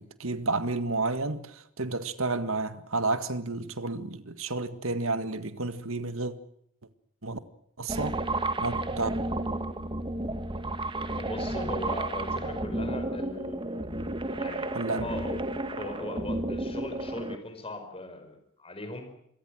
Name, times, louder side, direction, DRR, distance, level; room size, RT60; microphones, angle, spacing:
voice 1, 0.0-6.3 7.2-7.4 7.8-8.2 8.6-9.1 14.7-15.1, right 3 dB, 70° right, 1.9 m, -31 dB
sound 1, 7.9-17.4, right 2 dB, 25° right, 1.7 m, -32 dB
voice 2, 11.2-13.9 14.2-14.7 15.0-15.4 15.8-19.1, left 2 dB, 25° left, 5.1 m, -39 dB
27.0 x 23.0 x 6.4 m
head